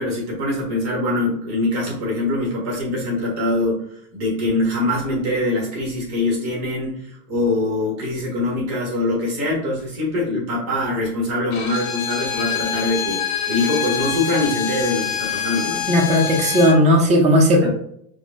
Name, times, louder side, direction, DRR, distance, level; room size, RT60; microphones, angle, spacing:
voice 1, 0.0-15.9 17.6-17.7, left 2 dB, 30° right, -3 dB, 1.7 m, -23 dB
Bowed string instrument, 11.5-16.8, left 9 dB, 60° left, 0.8 m, -26 dB
voice 2, 15.9-17.7, equal, 15° right, -1 dB, 0.8 m, -15 dB
4.7 x 2.4 x 3.6 m, 0.68 s
supercardioid pair, 150°, 47 cm